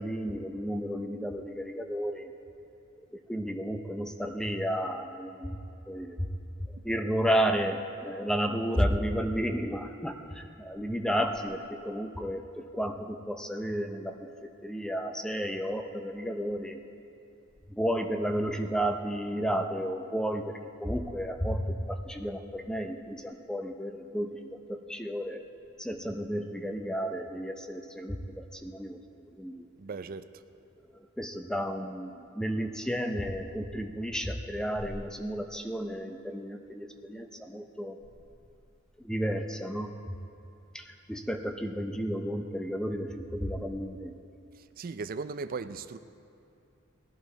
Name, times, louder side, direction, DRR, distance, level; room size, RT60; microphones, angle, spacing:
voice 1, 0.0-2.3 3.3-5.6 5.9-6.3 6.8-16.8 17.7-25.4 25.8-29.0 29.3-29.7 31.2-38.0 39.0-40.2 40.7-44.1, equal, 5° left, 5 dB, 0.6 m, -32 dB
voice 2, 29.8-30.3 44.8-46.0, right 4 dB, 45° right, 12 dB, 0.4 m, -37 dB
19.0 x 11.0 x 3.9 m, 2.6 s
head